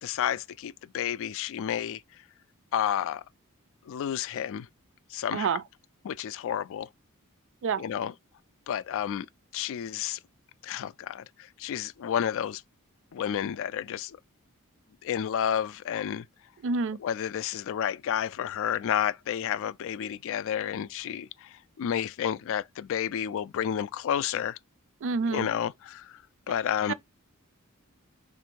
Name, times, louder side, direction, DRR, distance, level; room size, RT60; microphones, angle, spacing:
voice 1, 0.0-2.0 2.7-3.2 3.9-4.7 5.1-5.5 6.0-6.9 7.8-8.1 8.7-9.3 9.5-10.2 10.6-11.2 11.6-12.6 13.1-14.2 15.0-16.2 17.0-24.6 25.3-26.1 26.5-26.9, left 9 dB, 65° left, 0.3 m, -30 dB
voice 2, 16.6-17.0 25.0-25.5 26.9-27.0, right 5 dB, 60° right, 0.4 m, -28 dB
3.5 x 2.6 x 4.5 m
head